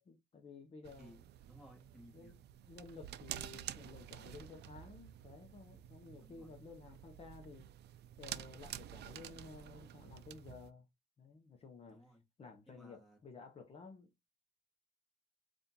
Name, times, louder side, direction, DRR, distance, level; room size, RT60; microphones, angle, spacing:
voice 1, 0.0-1.1 2.1-7.7 8.2-10.9 11.2-14.1, left 4 dB, 35° left, 0.7 m, -54 dB
sound 1, 0.8-10.7, right 11 dB, 75° right, 0.4 m, -50 dB
voice 2, 1.0-2.3 6.1-6.5 11.9-12.2 12.7-13.2, equal, ahead, 1.4 m, -60 dB
4.2 x 2.5 x 3.6 m
cardioid pair, 165°, 17 cm